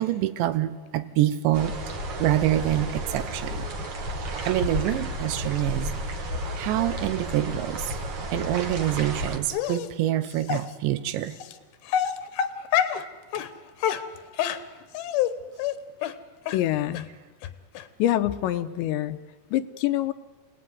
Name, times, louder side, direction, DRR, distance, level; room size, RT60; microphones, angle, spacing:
voice 1, 0.0-1.8 2.2-3.7 4.5-5.9 6.6-8.0 8.3-11.4, right 13 dB, 85° right, 3.4 m, -26 dB
sound 1, 1.5-9.4, right 1 dB, 45° right, 2.4 m, -32 dB
Dog, 9.5-9.9 10.5-10.6 11.4-11.5 11.9-13.0 13.3-13.5 13.8-15.3 15.6-15.7 16.0-16.1 16.5-16.6 16.9-17.0 17.4-17.5 17.8-17.9, left 10 dB, 70° left, 2.7 m, -26 dB
voice 2, 16.5-17.1 18.0-19.2 19.5-20.1, left 13 dB, 85° left, 3.2 m, -25 dB
28.5 x 18.5 x 9.6 m
omnidirectional pair, 5.0 m